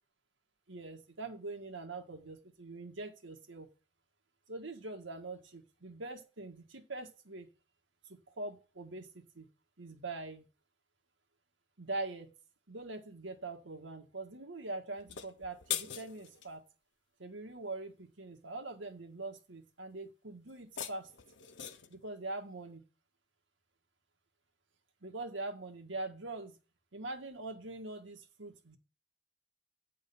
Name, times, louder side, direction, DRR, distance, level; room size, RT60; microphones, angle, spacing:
voice 1, 0.7-3.7 4.5-7.5 8.1-9.5 9.8-10.5 11.8-12.3 12.7-16.6 17.2-21.1 21.9-22.8 25.0-26.6 26.9-28.8, right 2 dB, 85° right, 5 dB, 1.6 m, -43 dB
sound 1, 15.0-16.5 20.5-22.0, left 10 dB, 75° left, 0.8 m, -41 dB
9.8 x 3.8 x 7.0 m, 0.33 s
head